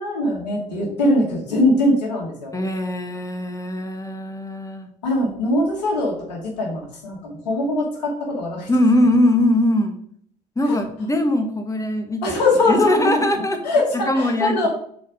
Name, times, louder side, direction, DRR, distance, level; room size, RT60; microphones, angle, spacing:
voice 1, 0.0-2.5 5.0-8.7 10.6-10.8 12.2-14.7, left 1 dB, 80° left, -1 dB, 2.2 m, -22 dB
voice 2, 2.5-4.9 8.7-10.0 10.5-12.4 12.7-13.6 14.1-14.7, left 1 dB, 15° left, 5 dB, 1.5 m, -21 dB
6.2 x 4.2 x 5.0 m, 0.62 s
hypercardioid pair, 55°, 21 cm